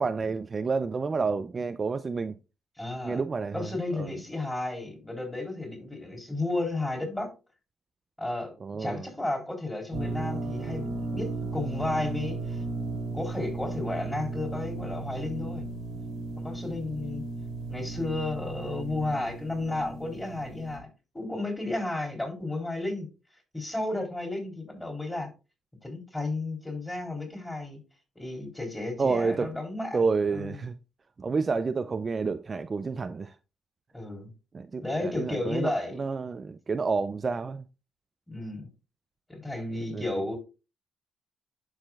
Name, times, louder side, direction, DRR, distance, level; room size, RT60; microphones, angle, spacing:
voice 1, 0.0-2.3 3.0-4.1 8.6-9.1 29.0-29.5 29.9-30.8 31.2-33.3 34.5-37.7 39.9-40.2, right 4 dB, 35° right, 0.4 m, -29 dB
voice 2, 2.8-3.2 3.5-7.3 8.2-12.6 13.1-15.7 16.4-17.2 17.7-20.9 21.1-23.1 23.5-25.3 25.8-27.8 28.1-30.6 33.9-34.3 34.8-36.0 38.3-38.7 39.3-40.4, left 2 dB, 10° left, 3.2 m, -33 dB
sound 1, 9.9-20.8, right 3 dB, 85° right, 1.9 m, -35 dB
11.5 x 4.8 x 2.4 m
cardioid pair, 90°, 0 cm